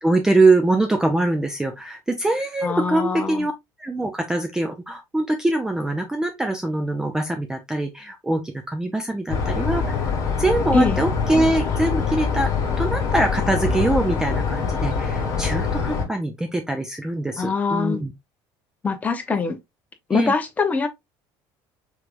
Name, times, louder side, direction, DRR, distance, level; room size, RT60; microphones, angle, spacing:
voice 1, 0.0-3.5 3.8-12.5 12.8-18.1 20.1-20.3, right 2 dB, 5° right, 0.5 m, -23 dB
voice 2, 2.6-3.5 10.7-11.0 17.4-18.0 18.8-19.6 20.1-20.9, left 4 dB, 15° left, 0.8 m, -23 dB
sound 1, 9.3-16.0, left 5 dB, 40° left, 1.8 m, -24 dB
4.8 x 3.2 x 2.5 m
cardioid pair, 150°, 9 cm